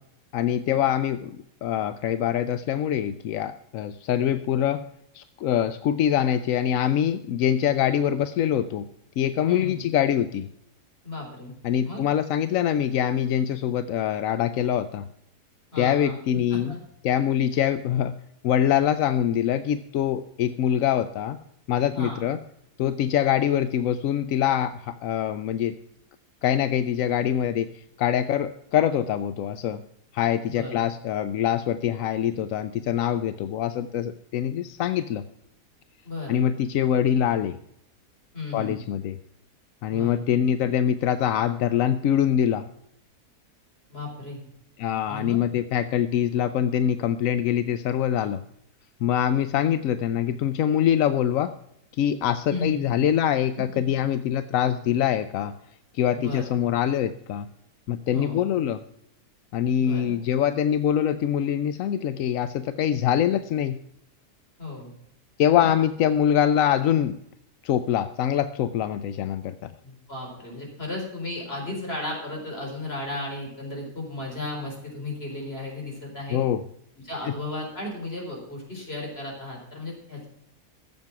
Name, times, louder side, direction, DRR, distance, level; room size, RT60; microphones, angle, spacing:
voice 1, 0.3-4.8 5.1-8.9 9.2-10.5 11.6-15.1 15.8-16.8 17.0-18.1 18.4-21.4 21.7-22.4 22.8-25.7 26.4-29.8 30.1-35.2 36.3-37.6 38.5-39.2 39.8-42.7 44.8-48.4 49.0-51.5 51.9-55.5 55.9-57.5 57.9-58.8 59.5-63.8 65.4-67.2 67.6-69.7 76.3-76.6 77.2-77.3, left 10 dB, 65° left, 12 dB, 0.9 m, -24 dB
voice 2, 9.5-9.9 11.0-11.5 11.8-12.0 15.7-16.2 16.5-16.8 22.0-22.2 30.5-30.8 36.0-36.4 38.3-38.7 39.9-40.2 43.9-44.4 45.1-45.4 52.5-52.9 56.1-56.5 58.1-58.4 59.8-60.1 64.6-64.9 69.8-76.4 77.0-80.3, left 2 dB, 35° left, 0 dB, 4.4 m, -34 dB
14.5 x 7.6 x 5.9 m, 0.76 s
omnidirectional pair, 1.7 m